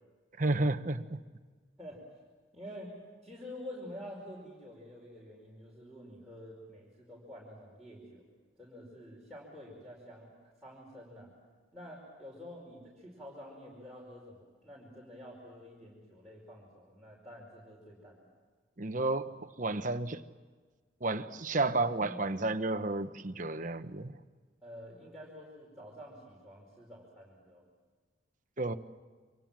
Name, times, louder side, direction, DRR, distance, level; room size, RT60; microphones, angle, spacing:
voice 1, 0.4-1.2 18.8-20.2 21.0-24.1 28.6-28.7, right 2 dB, 40° right, 9 dB, 1.0 m, -32 dB
voice 2, 2.5-8.2 8.6-11.3 11.7-18.3 21.6-22.2 24.6-27.6, equal, ahead, -5 dB, 5.2 m, -48 dB
28.5 x 25.5 x 7.5 m, 1.4 s
head